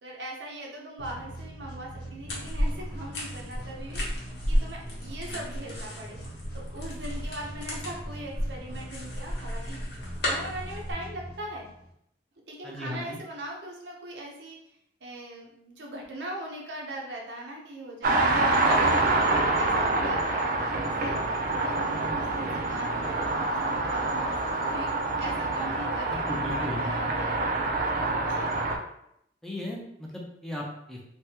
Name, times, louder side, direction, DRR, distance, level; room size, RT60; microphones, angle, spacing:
voice 1, 0.0-4.0 4.5-6.2 6.5-9.8 10.2-11.7 12.5-14.6 15.0-24.9 25.2-27.8 28.2-28.5, right 1 dB, 90° right, -1 dB, 0.8 m, -40 dB
sound 1, 1.0-11.9, right 1 dB, 85° left, 1.0 m, -42 dB
sound 2, 2.3-10.9, equal, 65° left, 0.9 m, -33 dB
voice 2, 12.6-13.2 26.1-26.8 29.4-31.0, left 1 dB, ahead, -3 dB, 0.5 m, -36 dB
sound 3, 18.0-28.8, right 2 dB, 50° right, 0.4 m, -26 dB
3.3 x 2.2 x 2.8 m, 0.74 s
head